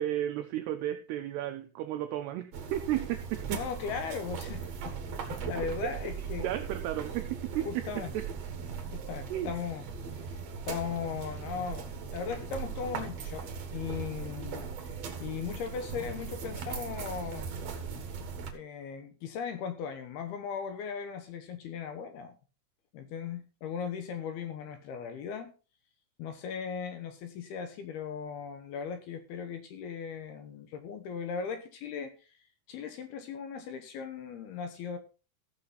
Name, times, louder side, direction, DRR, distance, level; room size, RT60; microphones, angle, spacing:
voice 1, 0.0-3.6 6.4-8.3 9.3-9.5, right 12 dB, 85° right, 2.3 m, -33 dB
sound 1, 2.5-18.5, right 6 dB, 65° right, 1.7 m, -39 dB
voice 2, 3.5-5.0 5.3-6.5 7.7-8.1 8.9-9.8 10.7-14.7 15.2-17.5 18.5-22.3 22.9-25.5 26.2-32.3 32.7-35.0, left 6 dB, 70° left, 2.6 m, -38 dB
15.5 x 6.8 x 4.0 m
omnidirectional pair, 5.4 m